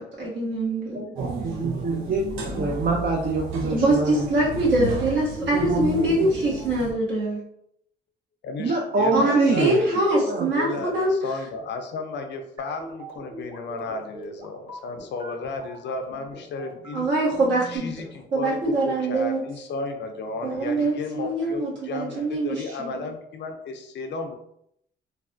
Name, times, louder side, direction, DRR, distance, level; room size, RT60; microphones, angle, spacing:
voice 1, 0.0-1.0 3.7-7.4 9.1-11.1 16.9-17.9 18.3-19.4 20.4-23.0, right 2 dB, 65° right, -5 dB, 1.4 m, -24 dB
voice 2, 0.9-4.3 5.5-6.1 8.6-9.9 10.2-10.5, right 3 dB, 45° right, 0 dB, 0.5 m, -26 dB
sound 1, 1.2-6.9, right 3 dB, 90° right, 0.7 m, -33 dB
voice 3, 8.4-17.1 17.7-24.4, left 3 dB, 65° left, 5 dB, 0.5 m, -34 dB
sound 2, 12.6-17.8, right 2 dB, 25° right, 0.9 m, -42 dB
3.2 x 2.3 x 2.5 m, 0.74 s
cardioid pair, 90°, 20 cm